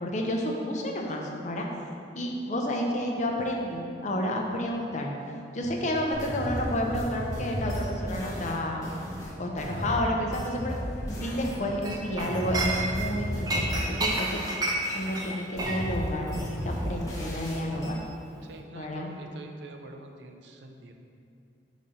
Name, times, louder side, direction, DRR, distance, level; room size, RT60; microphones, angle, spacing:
voice 1, 0.0-1.7 2.2-5.1 5.5-8.8 9.4-10.8 11.2-18.0 18.7-19.1, left 1 dB, 40° left, 0 dB, 0.7 m, -30 dB
sound 1, 3.7-3.8 5.6-8.4 10.6-12.1 15.9-17.9, equal, 60° left, 1.2 m, -43 dB
sound 2, 6.1-11.6 11.8-14.6 14.8-17.9, equal, 20° left, 1.0 m, -34 dB
Chink clink, 11.8-13.1 13.5-18.1 18.3-18.6, right 2 dB, 20° right, 0.6 m, -32 dB
voice 2, 18.4-20.9, right 2 dB, 70° right, 4 dB, 0.5 m, -46 dB
5.6 x 4.1 x 5.0 m, 2.5 s
head